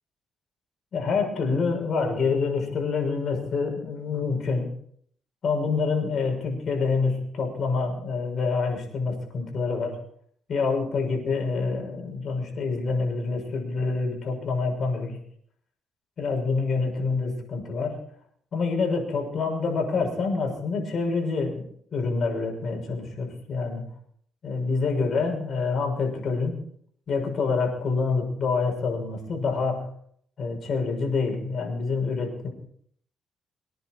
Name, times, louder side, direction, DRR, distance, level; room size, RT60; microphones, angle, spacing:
voice 1, 0.9-4.7 5.4-10.0 10.5-15.2 16.2-18.0 18.5-21.6 21.9-23.9 24.4-26.6 27.1-29.9 30.4-32.5, left 4 dB, 55° left, 2 dB, 6.4 m, -27 dB
25.0 x 10.0 x 4.6 m, 0.63 s
cardioid pair, 90°, 0 cm